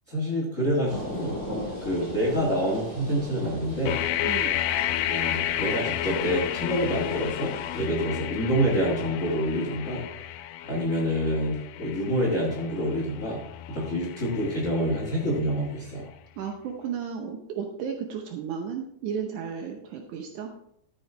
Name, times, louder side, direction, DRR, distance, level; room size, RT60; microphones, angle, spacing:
voice 1, 0.1-1.4 1.8-4.0 5.1-10.0 10.6-13.4 13.7-16.1, equal, 60° left, -1 dB, 0.8 m, -27 dB
sound 1, 0.8-7.8, equal, 20° right, 4.8 m, -39 dB
sound 2, 3.9-15.7, left 12 dB, 90° left, 2.7 m, -32 dB
voice 2, 16.4-20.5, right 7 dB, 80° right, 3 dB, 1.7 m, -34 dB
13.0 x 7.7 x 3.3 m, 0.73 s
omnidirectional pair, 4.7 m